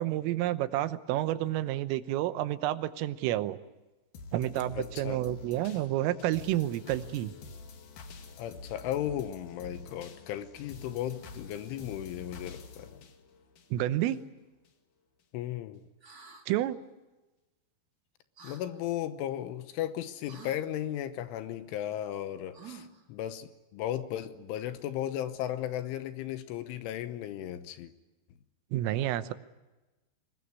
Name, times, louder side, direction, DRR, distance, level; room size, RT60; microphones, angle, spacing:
voice 1, 0.0-3.6 4.3-7.3 13.7-14.2 16.5-16.8 28.7-29.3, right 14 dB, 85° right, 12 dB, 3.6 m, -30 dB
sound 1, 4.1-14.2 14.6-14.7, left 4 dB, 55° left, 2.6 m, -48 dB
voice 2, 4.7-5.2 8.4-13.0 15.3-15.8 18.4-27.9, left 11 dB, 75° left, 10 dB, 3.4 m, -35 dB
sound 2, 16.0-16.4 18.4-18.6 20.3-20.6 22.5-23.0, right 6 dB, 65° right, 0.9 m, -49 dB
23.5 x 20.5 x 9.7 m, 1.1 s
omnidirectional pair, 5.8 m